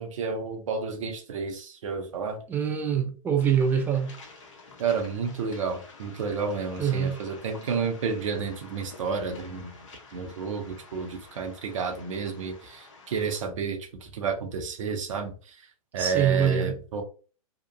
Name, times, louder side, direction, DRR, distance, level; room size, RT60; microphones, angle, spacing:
voice 1, 0.0-2.4 4.8-9.8 10.1-17.0, right 5 dB, 60° right, 0.8 m, -31 dB
voice 2, 2.5-4.1 6.8-7.2 16.0-16.7, right 8 dB, 10° right, 0.4 m, -24 dB
Waves surf, 3.4-13.4, left 3 dB, 55° left, 0.8 m, -50 dB
2.9 x 2.3 x 2.3 m
figure-of-eight pair, 110°, 19 cm